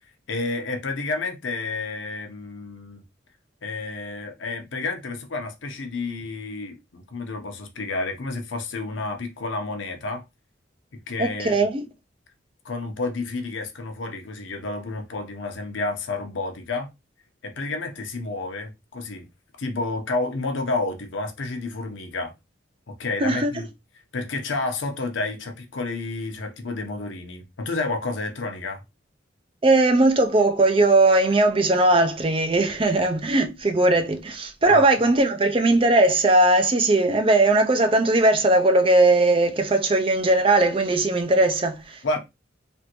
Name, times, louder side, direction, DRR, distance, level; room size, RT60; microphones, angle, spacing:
voice 1, 0.3-3.0 3.6-10.2 11.1-11.7 12.6-16.9 17.4-19.3 19.6-22.3 22.9-23.7 24.1-28.8 34.6-34.8 42.0-42.2, left 3 dB, 80° left, 0.8 m, -30 dB
voice 2, 11.2-11.8 23.2-23.5 29.6-42.2, right 2 dB, 30° right, 0.5 m, -19 dB
3.5 x 2.5 x 2.9 m
head